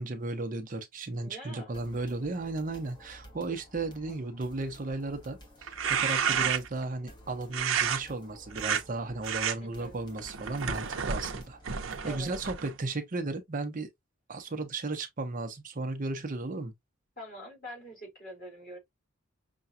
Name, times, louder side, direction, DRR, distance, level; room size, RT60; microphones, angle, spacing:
voice 1, 0.0-13.9 14.3-16.7, right 2 dB, 40° right, 0.6 m, -35 dB
voice 2, 1.2-1.8 9.6-10.0 12.0-12.3 17.2-18.8, equal, 45° left, 2.9 m, -45 dB
sound 1, 1.7-12.4, equal, 20° left, 1.1 m, -53 dB
sound 2, 5.6-6.8 7.5-8.0 8.5-8.8 9.2-9.5 10.2-12.8, right 7 dB, 85° right, 0.6 m, -30 dB
5.7 x 2.3 x 2.5 m
head